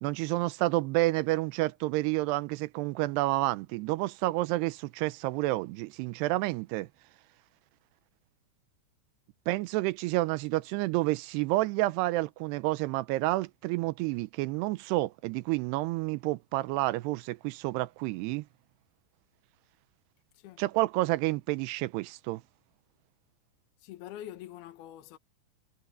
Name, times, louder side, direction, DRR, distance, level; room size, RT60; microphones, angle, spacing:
voice 1, 0.0-6.9 9.5-18.5 20.6-22.4, right 19 dB, 90° right, 2.7 m, -29 dB
voice 2, 23.8-25.2, left 12 dB, 75° left, 3.2 m, -45 dB
omnidirectional pair, 4.7 m